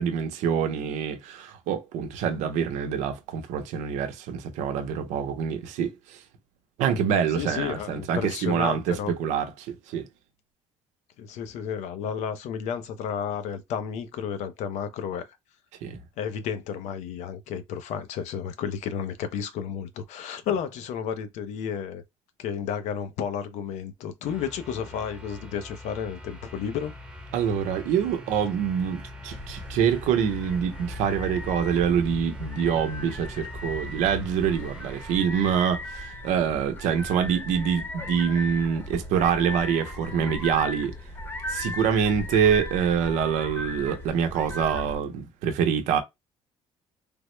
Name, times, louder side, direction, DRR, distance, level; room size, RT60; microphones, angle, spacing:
voice 1, 0.0-6.2 6.8-10.1 15.8-16.0 27.3-40.9 41.5-46.0, right 7 dB, 90° right, 0.7 m, -26 dB
voice 2, 7.3-9.1 11.2-15.3 16.2-22.0 22.4-26.9, left 7 dB, 75° left, 0.6 m, -32 dB
sound 1, 24.2-35.2, left 1 dB, 10° right, 0.8 m, -42 dB
sound 2, 29.3-45.0, left 1 dB, 20° left, 0.8 m, -37 dB
3.4 x 2.1 x 3.0 m
cardioid pair, 120°, 12 cm